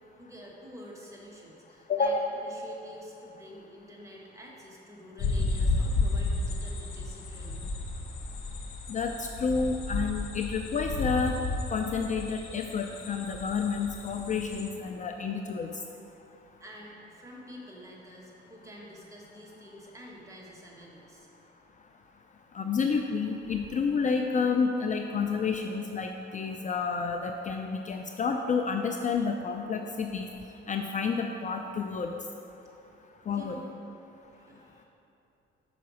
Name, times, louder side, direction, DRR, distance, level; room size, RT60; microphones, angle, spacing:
voice 1, 0.2-7.6 16.6-21.3 33.3-33.7 34.3-34.9, equal, 15° right, -3 dB, 1.5 m, -48 dB
voice 2, 1.9-2.3 8.9-11.4 11.7-15.7 22.5-30.3 30.7-32.1 33.3-33.6, left 5 dB, 40° left, 4 dB, 0.4 m, -30 dB
sound 1, 5.2-14.7, left 3 dB, 85° left, 1.0 m, -32 dB
5.8 x 5.1 x 6.2 m, 2.8 s
cardioid pair, 90°, 20 cm